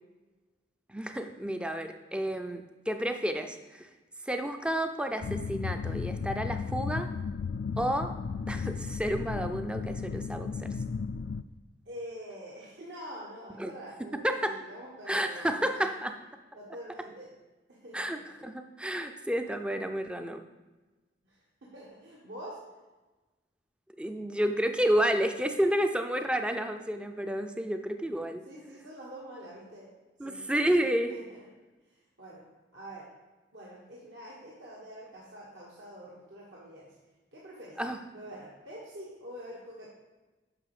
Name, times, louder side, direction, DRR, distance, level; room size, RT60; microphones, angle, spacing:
voice 1, 0.9-3.9 4.3-7.1 7.8-8.1 8.5-10.7 13.6-13.7 14.1-14.6 15.1-16.2 17.9-20.4 24.0-28.4 30.2-31.1 37.8-38.0, equal, 5° right, 7 dB, 0.4 m, -30 dB
sound 1, 5.2-11.4, left 5 dB, 70° left, 0.3 m, -34 dB
voice 2, 11.8-15.8 16.5-17.3 17.7-18.1 21.2-22.6 28.5-29.9 30.2-30.5 31.1-31.4 31.8-32.4 32.7-33.1 33.5-36.9 37.3-37.8 38.1-39.9, equal, 75° right, -5 dB, 1.6 m, -46 dB
9.8 x 6.2 x 5.0 m, 1.2 s
head